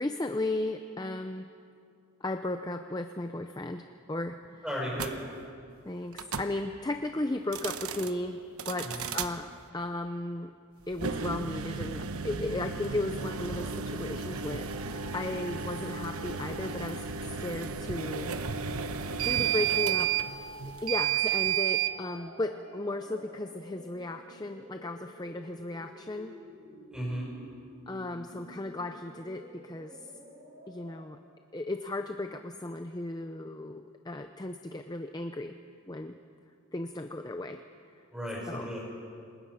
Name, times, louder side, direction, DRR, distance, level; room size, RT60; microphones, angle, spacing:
voice 1, 0.0-1.5 2.2-4.6 5.9-8.4 8.6-9.5 9.7-10.5 10.9-17.0 17.4-18.3 19.2-20.1 20.8-26.4 27.9-30.0 30.7-31.2 31.5-35.6 35.9-36.2 36.7-37.6 38.5-38.7, left 2 dB, 20° left, 7 dB, 0.6 m, -35 dB
voice 2, 4.6-5.2 8.8-9.1 19.1-19.4 26.9-27.3 38.1-38.8, equal, 5° right, -5 dB, 6.7 m, -35 dB
sound 1, 4.9-5.1 6.1-6.5 7.4-8.1 8.6-9.3 10.9-21.9, right 8 dB, 80° right, 1.0 m, -32 dB
sound 2, 12.9-31.0, equal, 60° right, 5.2 m, -49 dB
28.0 x 20.0 x 5.7 m, 2.4 s
head